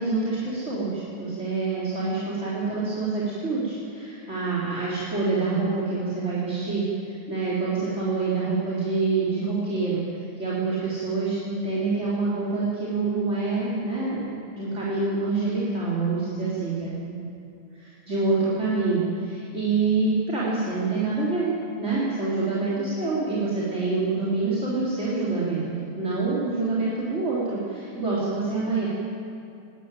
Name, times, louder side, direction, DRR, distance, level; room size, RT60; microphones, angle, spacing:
voice 1, 0.0-17.2 18.0-21.5 21.8-25.7 25.9-28.9, right 3 dB, 15° right, -9 dB, 3.4 m, -26 dB
19.5 x 18.5 x 9.2 m, 2.5 s
omnidirectional pair, 5.0 m